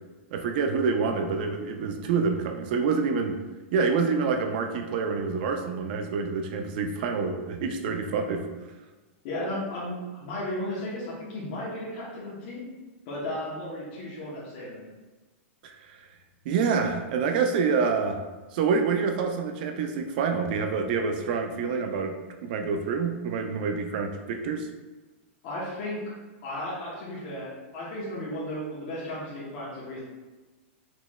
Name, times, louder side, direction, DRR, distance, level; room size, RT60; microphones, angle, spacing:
voice 1, 0.3-3.4 3.7-8.5 15.6-15.9 16.5-18.2 18.5-24.7, right 5 dB, 40° right, 5 dB, 0.3 m, -27 dB
voice 2, 9.2-12.6 13.1-14.8 25.4-26.0 26.4-30.0, left 1 dB, 35° left, -7 dB, 0.8 m, -34 dB
4.1 x 3.0 x 2.2 m, 1.2 s
supercardioid pair, 170°, 7 cm